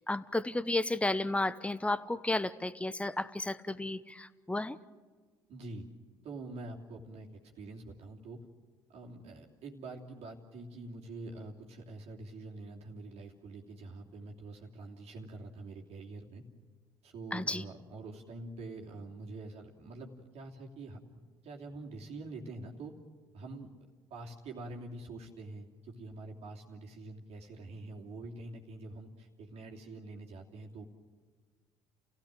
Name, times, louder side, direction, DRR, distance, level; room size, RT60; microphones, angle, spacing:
voice 1, 0.1-4.8 17.3-17.6, left 2 dB, 10° left, 16 dB, 0.9 m, -33 dB
voice 2, 5.5-5.9 6.2-8.4 8.9-16.4 17.0-23.0 23.3-23.7 24.1-30.8, right 2 dB, 55° right, 0 dB, 2.9 m, -46 dB
29.0 x 16.5 x 7.6 m, 1.5 s
hypercardioid pair, 60°, 13 cm